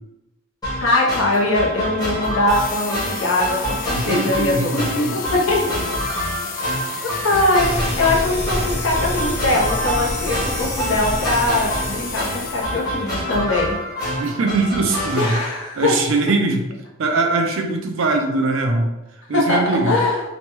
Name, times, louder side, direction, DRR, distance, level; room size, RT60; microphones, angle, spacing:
sound 1, 0.6-15.4, equal, 20° left, 0.9 m, -27 dB
voice 1, 0.8-5.8 7.0-13.8 15.1-16.0 19.3-20.2, left 2 dB, 65° left, -3 dB, 0.7 m, -21 dB
sound 2, 2.5-13.0, left 6 dB, 40° left, 0.3 m, -33 dB
voice 2, 3.9-5.1 14.2-15.4 15.8-16.7 17.0-18.9 19.3-20.0, right 3 dB, 70° right, 3 dB, 0.4 m, -21 dB
sound 3, 7.6-12.7, equal, 10° right, 0.6 m, -29 dB
2.9 x 2.2 x 2.9 m, 0.98 s
head